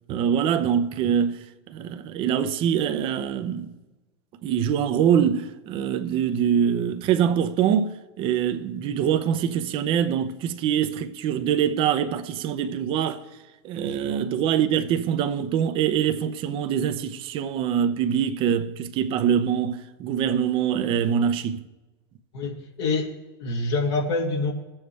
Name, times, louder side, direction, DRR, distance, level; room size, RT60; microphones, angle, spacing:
voice 1, 0.1-1.4 1.7-3.7 4.4-13.2 13.6-21.6, right 8 dB, 40° right, 0.8 m, -24 dB
voice 2, 13.8-14.2 22.3-23.1 23.4-24.5, left 3 dB, 75° left, 2.2 m, -26 dB
21.0 x 7.2 x 3.3 m
supercardioid pair, 125°, 14 cm